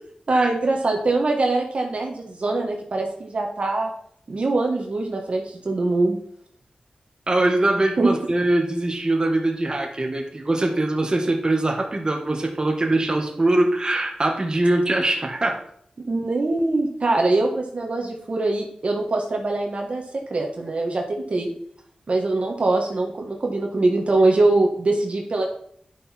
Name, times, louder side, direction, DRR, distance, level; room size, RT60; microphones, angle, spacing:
voice 1, 0.3-3.9 4.3-6.2 8.0-8.1 16.1-21.5 22.1-25.4, right 2 dB, 55° right, 1 dB, 1.5 m, -23 dB
voice 2, 7.3-15.6, right 2 dB, 35° right, 1 dB, 1.6 m, -22 dB
10.5 x 6.0 x 4.4 m, 0.64 s
wide cardioid pair, 85°, 2 cm